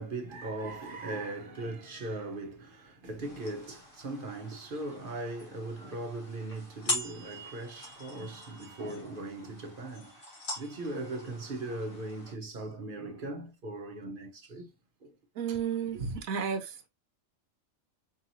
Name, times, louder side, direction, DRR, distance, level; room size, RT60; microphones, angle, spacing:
voice 1, 0.0-14.7 15.0-15.1 15.8-16.0, right 2 dB, 45° right, 0.9 m, -39 dB
sound 1, 3.2-12.3, left 2 dB, 85° left, 2.2 m, -42 dB
voice 2, 15.4-16.9, right 6 dB, 90° right, 1.2 m, -32 dB
4.6 x 3.0 x 2.6 m
omnidirectional pair, 1.4 m